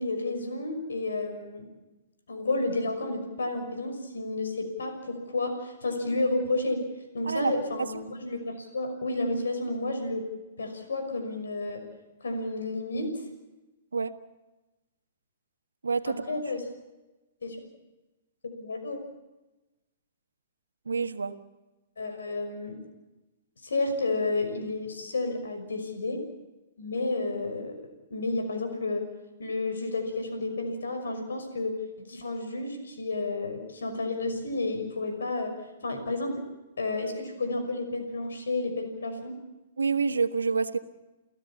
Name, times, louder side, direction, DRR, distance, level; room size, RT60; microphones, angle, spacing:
voice 1, 0.0-1.7 2.3-6.8 7.1-10.2 10.6-11.8 12.2-13.1 16.1-16.6 17.4-17.6 18.6-19.0 22.0-22.8 23.6-26.2 26.8-27.8 28.1-29.0 29.4-35.5 35.8-36.4 36.8-39.4, left 2 dB, 80° left, 6 dB, 6.0 m, -31 dB
voice 2, 15.8-16.4 20.9-21.3 39.8-40.8, right 5 dB, 85° right, 9 dB, 1.5 m, -27 dB
30.0 x 15.5 x 7.3 m, 1.1 s
hypercardioid pair, 120°, 0 cm